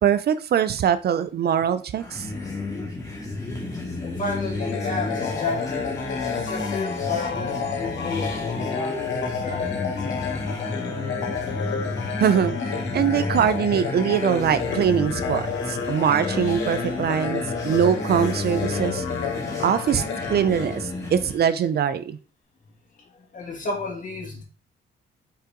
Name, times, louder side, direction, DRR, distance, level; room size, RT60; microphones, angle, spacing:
voice 1, 0.0-2.3 12.2-19.0 19.6-22.2, right 8 dB, 55° right, 0.5 m, -22 dB
sound 1, 2.0-21.4, left 3 dB, 15° left, 2.2 m, -31 dB
voice 2, 4.0-5.9 6.3-10.3 23.0-24.4, left 3 dB, 40° left, 2.7 m, -32 dB
sound 2, 4.6-21.4, left 6 dB, 70° left, 1.5 m, -31 dB
5.6 x 4.8 x 3.7 m
cardioid pair, 90°, 20 cm